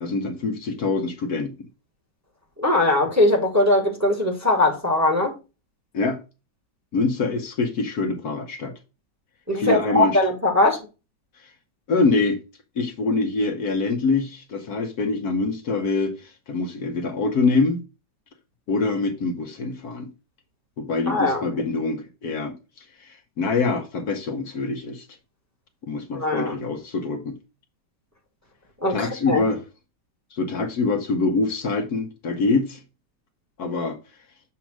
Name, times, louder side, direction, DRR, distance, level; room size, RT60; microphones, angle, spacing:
voice 1, 0.0-1.5 5.9-6.2 6.9-8.7 9.5-10.2 11.9-12.4 12.8-17.8 18.7-20.1 20.8-22.5 23.0-25.0 25.9-27.3 28.9-29.6 30.3-32.8 33.6-34.0, left 3 dB, 60° left, 1.4 m, -24 dB
voice 2, 2.6-5.3 9.5-10.8 21.1-21.4 26.1-26.5 28.8-29.4, left 2 dB, 10° right, 1.4 m, -20 dB
7.2 x 2.8 x 5.9 m
omnidirectional pair, 1.9 m